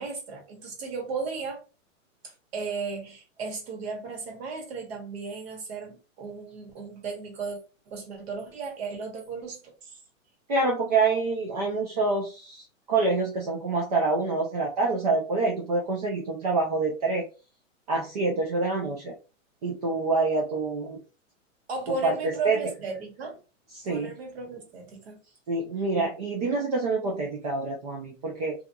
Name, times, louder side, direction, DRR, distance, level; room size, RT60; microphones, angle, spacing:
voice 1, 0.0-1.6 2.2-7.6 7.9-10.0 21.7-23.4 23.9-25.2, right 4 dB, 50° right, 1.2 m, -35 dB
voice 2, 10.5-17.2 17.9-19.1 19.6-21.0 22.0-22.6 23.7-24.1 25.5-28.5, right 3 dB, 30° right, 0.4 m, -26 dB
2.9 x 2.3 x 2.2 m
hypercardioid pair, 160°, 39 cm